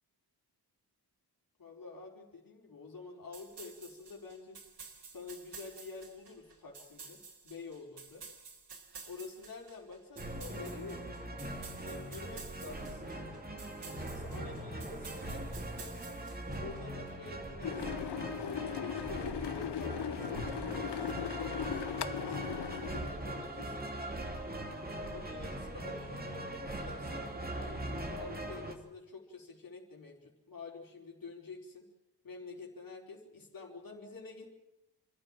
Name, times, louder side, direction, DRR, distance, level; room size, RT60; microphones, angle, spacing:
voice 1, 1.6-4.6 5.1-8.3 9.0-11.2 11.8-13.3 13.8-16.2 16.6-18.0 18.4-22.5 23.0-24.5 25.1-27.3 27.5-31.8 32.2-34.5, left 4 dB, 55° left, -1 dB, 4.6 m, -48 dB
sound 1, 3.3-16.8, right 5 dB, 85° right, 3.8 m, -52 dB
sound 2, 10.2-28.7, right 1 dB, 20° right, 2.8 m, -41 dB
sound 3, 17.6-23.1, left 10 dB, 75° left, 0.7 m, -38 dB
28.0 x 14.5 x 7.5 m, 1.0 s
wide cardioid pair, 180°, 40 cm